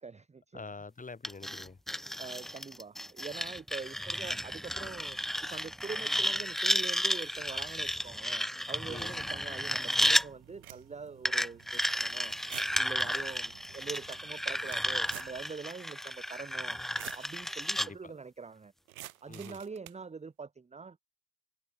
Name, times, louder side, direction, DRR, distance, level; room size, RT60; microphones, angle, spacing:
voice 1, 0.0-0.6 2.2-5.2 5.5-12.3 12.8-16.8 17.1-18.7 19.2-21.0, right 5 dB, 15° right, 1.4 m, -44 dB
voice 2, 0.5-1.8 8.9-9.2 17.7-18.1 19.3-19.6, left 4 dB, 20° left, 6.7 m, -46 dB
sound 1, 1.2-10.3 11.3-17.9, equal, ahead, 1.2 m, -33 dB
sound 2, 8.8-15.5, right 18 dB, 60° right, 5.0 m, -59 dB
sound 3, 9.7-9.8 10.4-11.1 11.6-11.7 12.4-13.0 13.5-13.6 13.8-14.0 14.4-15.4 15.7-15.8 16.7-17.3 18.9-20.0, right 14 dB, 90° right, 1.3 m, -47 dB
hypercardioid pair, 80°, 41 cm